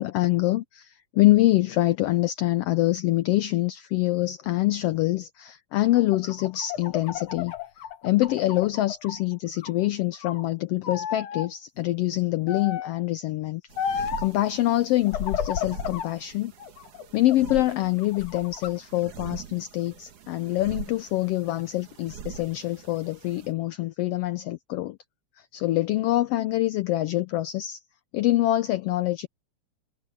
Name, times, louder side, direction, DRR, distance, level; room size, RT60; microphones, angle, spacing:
voice 1, 0.0-7.5 8.0-13.6 13.9-16.5 17.1-25.0 25.5-27.8 28.1-29.3, left 16 dB, 90° left, 1.3 m, -25 dB
sound 1, 6.0-9.2 9.6-10.4 10.8-11.5 12.5-13.0 13.8-14.3 15.1-16.1 16.6-17.6 18.0-18.7, left 8 dB, 60° left, 2.5 m, -33 dB
sound 2, 13.7-23.5, right 7 dB, 80° right, 3.3 m, -43 dB
omnidirectional pair, 3.4 m